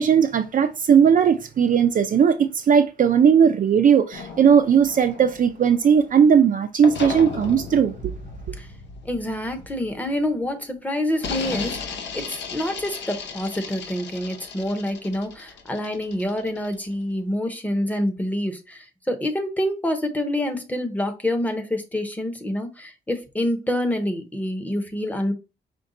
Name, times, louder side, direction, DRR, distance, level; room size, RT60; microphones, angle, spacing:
voice 1, 0.0-8.1, right 7 dB, 45° right, 0.4 m, -18 dB
sound 1, 4.1-6.4 6.8-10.5 11.1-16.9, left 5 dB, 75° left, 0.7 m, -36 dB
voice 2, 9.1-25.3, left 1 dB, 10° left, 0.8 m, -27 dB
5.3 x 2.2 x 3.8 m
wide cardioid pair, 135°, 18 cm